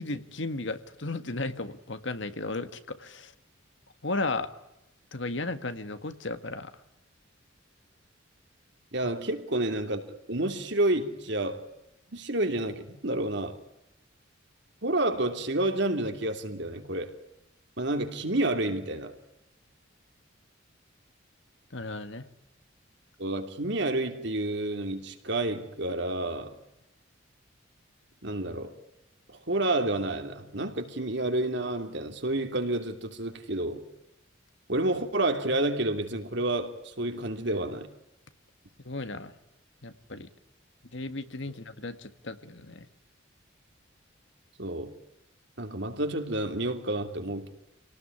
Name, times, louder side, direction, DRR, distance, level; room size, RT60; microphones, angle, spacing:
voice 1, 0.0-3.3 4.0-4.5 5.1-6.7 21.7-22.3 38.9-39.3 39.8-40.3 40.9-42.9, left 2 dB, 65° left, 1.8 m, -35 dB
voice 2, 8.9-10.0 10.3-11.7 12.1-13.6 14.8-17.1 17.8-19.1 23.2-26.5 28.2-28.7 29.5-33.8 34.7-37.9 44.6-45.0 45.6-47.5, right 2 dB, 60° right, 2.9 m, -29 dB
28.0 x 18.5 x 9.9 m
head